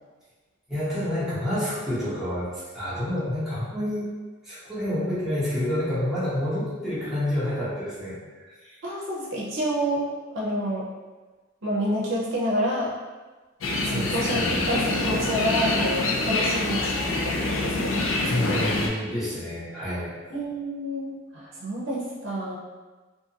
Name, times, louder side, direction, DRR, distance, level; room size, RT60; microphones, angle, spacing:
voice 1, 0.7-4.1 4.4-8.2 8.5-8.8 13.8-14.6 18.2-20.1, left 1 dB, ahead, -11 dB, 0.9 m, -29 dB
voice 2, 8.8-10.1 10.3-10.9 11.6-12.9 13.9-17.9 18.5-18.6 20.3-22.6, equal, 65° right, -5 dB, 0.6 m, -28 dB
sound 1, 13.6-18.9, left 2 dB, 70° left, 0.4 m, -26 dB
2.6 x 2.4 x 2.8 m, 1.3 s
head